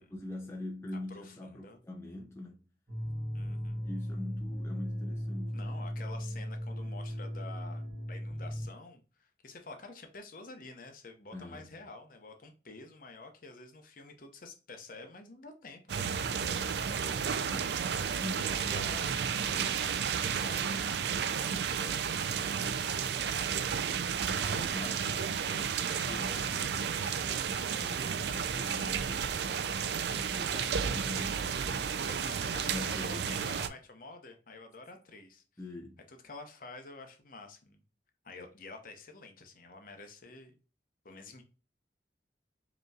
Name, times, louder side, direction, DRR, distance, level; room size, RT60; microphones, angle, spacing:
voice 1, 0.0-2.6 3.8-5.6 11.3-11.7 18.1-18.6 24.2-25.1 26.0-26.9 27.2-29.5 30.1-31.9 32.6-33.4 35.6-36.0, left 1 dB, 15° left, 0.6 m, -43 dB
voice 2, 1.1-1.8 3.3-3.8 5.5-17.7 18.6-19.2 19.8-21.1 21.7-22.8 24.7-25.4 26.0-26.7 30.8-31.0 32.0-35.4 36.1-37.8 38.2-40.5 41.0-41.4, left 3 dB, 50° left, 0.8 m, -49 dB
sound 1, 2.9-8.7, equal, 40° right, 1.9 m, -37 dB
sound 2, 15.9-33.7, right 7 dB, 65° right, 0.4 m, -32 dB
5.3 x 3.0 x 2.3 m
head